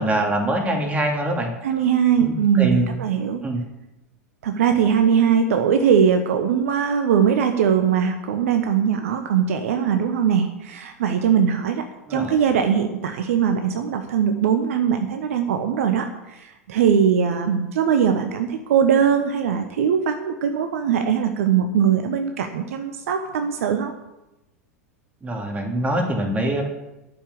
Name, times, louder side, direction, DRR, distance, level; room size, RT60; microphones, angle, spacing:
voice 1, 0.0-1.5 2.2-3.0 3.4-3.6 12.1-12.3 25.2-26.6, right 1 dB, 15° right, 1 dB, 3.0 m, -24 dB
voice 2, 1.6-3.4 4.4-11.8 12.1-23.9, right 7 dB, 65° right, 6 dB, 1.1 m, -21 dB
11.5 x 7.2 x 8.4 m, 0.98 s
figure-of-eight pair, 85°, 8 cm